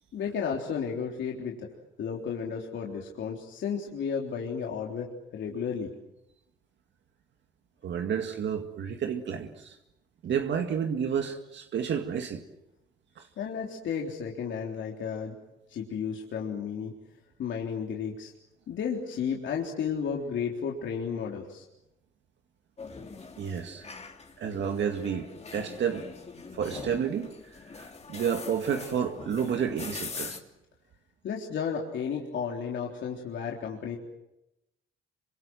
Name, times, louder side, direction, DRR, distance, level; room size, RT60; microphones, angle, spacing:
voice 1, 0.1-1.7 2.0-5.1 5.3-5.9 13.4-15.4 15.7-16.9 17.4-18.3 18.7-21.6 31.2-34.0, left 6 dB, 70° left, 3.7 m, -33 dB
voice 2, 7.8-9.8 10.2-12.4 13.2-13.3 23.4-23.9 24.4-26.1 26.5-27.3 27.6-30.4, right 7 dB, 65° right, 2.1 m, -30 dB
sound 1, 22.8-30.4, left 4 dB, 35° left, 3.2 m, -43 dB
27.5 x 25.0 x 7.8 m
cardioid pair, 90°, 20 cm